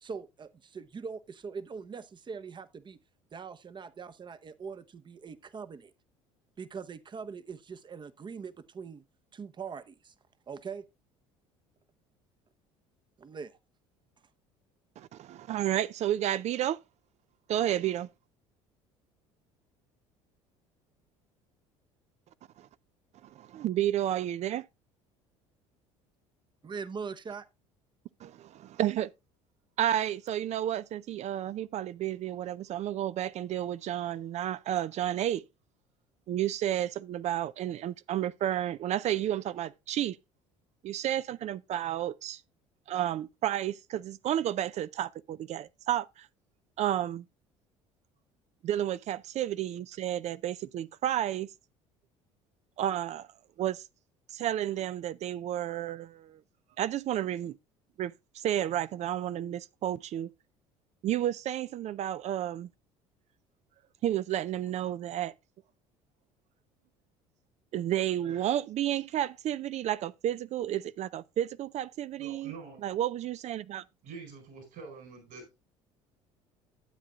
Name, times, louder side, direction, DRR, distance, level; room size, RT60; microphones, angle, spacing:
voice 1, 0.0-3.0 3.3-5.9 6.6-9.0 9.3-10.1 10.5-10.8 13.2-13.6 26.6-27.5, right 5 dB, 30° right, 0.8 m, -42 dB
voice 2, 15.0-16.8 17.5-18.1 22.6-22.7 23.4-24.6 28.2-29.1 29.8-35.4 36.3-40.2 40.8-42.4 42.9-46.3 46.8-47.3 48.6-51.5 52.8-53.3 53.6-53.8 54.3-56.4 56.8-57.6 58.0-60.3 61.0-62.7 64.0-65.3 67.7-72.5 72.8-73.8, right 12 dB, 50° right, 0.4 m, -31 dB
voice 3, 72.2-72.9 74.0-75.6, right 4 dB, 65° right, 4.6 m, -46 dB
12.5 x 8.5 x 2.4 m
hypercardioid pair, 65°, 15 cm